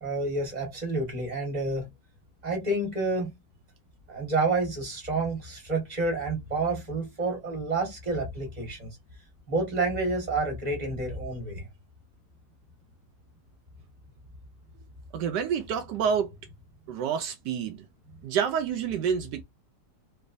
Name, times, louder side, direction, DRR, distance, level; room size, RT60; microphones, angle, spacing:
voice 1, 0.0-1.9 2.4-3.3 4.1-8.9 9.5-11.7, right 2 dB, 25° right, 1.7 m, -29 dB
voice 2, 15.1-16.3 16.9-17.8 18.2-19.4, right 7 dB, 80° right, 1.2 m, -28 dB
3.2 x 3.1 x 2.5 m
omnidirectional pair, 1.9 m